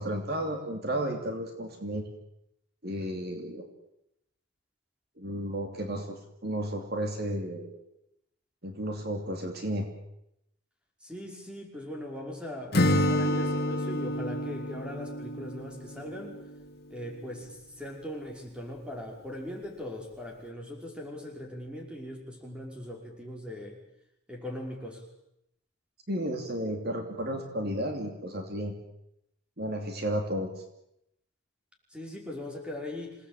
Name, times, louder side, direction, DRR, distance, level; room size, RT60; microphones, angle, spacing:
voice 1, 0.0-2.0 2.8-3.7 5.2-7.8 8.6-9.9 26.1-28.7 29.6-30.6, right 1 dB, 50° right, 4 dB, 2.9 m, -33 dB
voice 2, 11.0-16.4 16.9-23.8 24.3-25.0 31.9-33.2, left 1 dB, 5° right, 1 dB, 5.4 m, -40 dB
Acoustic guitar / Strum, 12.7-16.6, left 1 dB, 50° left, 2.7 m, -29 dB
27.5 x 18.5 x 9.0 m, 0.79 s
head